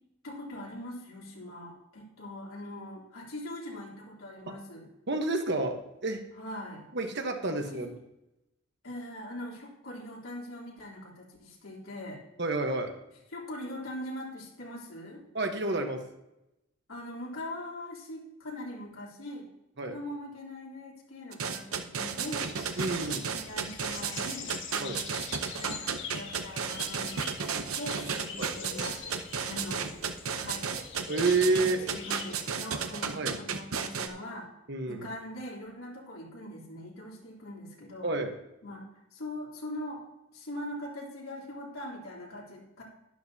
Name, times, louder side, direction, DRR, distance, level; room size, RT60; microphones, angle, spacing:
voice 1, 0.2-4.9 6.4-6.9 7.5-7.9 8.8-12.2 13.3-15.2 16.9-19.5 19.8-22.5 22.8-25.1 25.6-29.2 29.5-29.9 30.4-30.7 31.5-34.5 34.9-38.1 38.6-38.8 39.1-40.0 40.3-42.8, left 1 dB, 75° left, -3 dB, 3.5 m, -42 dB
voice 2, 5.1-6.2 6.9-7.9 12.4-12.9 15.3-16.0 19.8-20.0 22.8-23.2 24.8-25.0 28.4-28.5 31.1-31.8 33.2-33.4 34.7-35.1 38.0-38.3, right 3 dB, 55° right, 5 dB, 1.3 m, -29 dB
sound 1, 21.3-34.1, right 6 dB, 90° right, 0.9 m, -33 dB
sound 2, 22.2-32.4, left 5 dB, 60° left, 1.5 m, -44 dB
12.0 x 12.0 x 2.8 m, 0.89 s
head